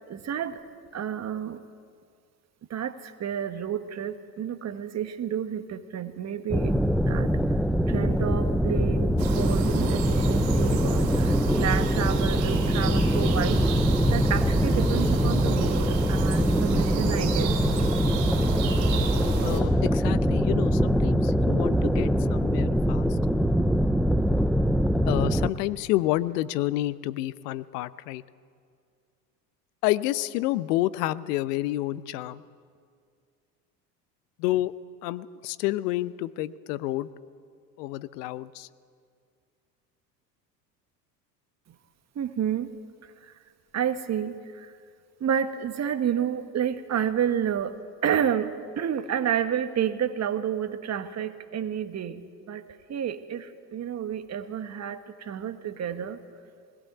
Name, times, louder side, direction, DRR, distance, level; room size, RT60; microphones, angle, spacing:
voice 1, 0.1-0.6 0.9-1.6 2.7-6.7 7.0-7.3 7.9-13.6 14.1-17.6 42.1-42.7 43.7-44.7 45.2-52.6 52.9-56.2, right 9 dB, 30° right, 10 dB, 1.4 m, -30 dB
sound 1, 6.5-25.5, equal, ahead, 0.4 m, -23 dB
sound 2, 9.2-19.6, right 7 dB, 60° right, 3.0 m, -32 dB
voice 2, 19.4-23.2 25.0-28.2 29.8-32.4 34.4-34.7 35.0-37.1 37.8-38.7, left 16 dB, 65° left, 17 dB, 0.8 m, -29 dB
20.5 x 16.0 x 8.1 m, 2.2 s
hypercardioid pair, 80°, 50 cm